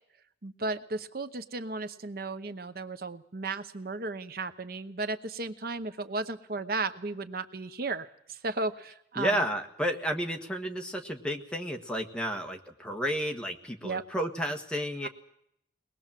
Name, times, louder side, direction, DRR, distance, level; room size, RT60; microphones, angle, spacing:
voice 1, 0.4-9.4 13.8-14.0 15.0-15.1, right 3 dB, 55° right, 10 dB, 0.9 m, -35 dB
voice 2, 9.2-15.1, equal, 5° left, 3 dB, 1.5 m, -32 dB
22.5 x 19.5 x 7.5 m, 0.73 s
head